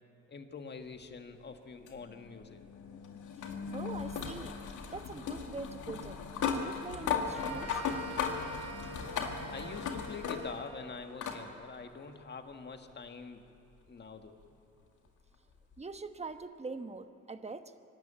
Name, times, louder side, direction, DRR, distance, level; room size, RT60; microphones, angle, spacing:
voice 1, 0.3-2.6 9.5-13.4 13.9-14.4, left 5 dB, 35° left, 6 dB, 1.6 m, -45 dB
sound 1, 1.9-10.7 11.2-11.4 12.7-12.8 15.7-15.8, left 6 dB, 80° left, 2.0 m, -37 dB
voice 2, 3.7-4.5 4.9-6.2 6.5-7.8 15.8-17.7, right 4 dB, 20° right, 9 dB, 1.1 m, -43 dB
sound 2, 7.3-11.0, right 2 dB, 50° right, 2.6 m, -47 dB
23.5 x 12.5 x 8.8 m, 2.9 s
cardioid pair, 90°, 30 cm